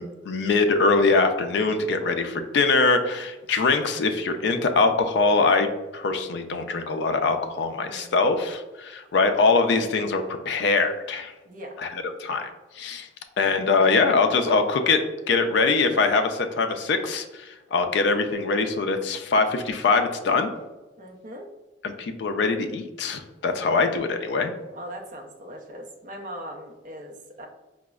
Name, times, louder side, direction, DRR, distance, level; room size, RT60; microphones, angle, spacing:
voice 1, 0.0-11.3 11.8-12.5 12.8-13.1 13.4-15.0 15.3-20.5 21.8-24.5, left 4 dB, 60° left, 6 dB, 0.3 m, -23 dB
voice 2, 7.7-8.3 11.4-11.8 21.0-21.5 24.7-27.5, equal, 45° right, 2 dB, 0.5 m, -40 dB
4.8 x 2.0 x 2.3 m, 1.1 s
head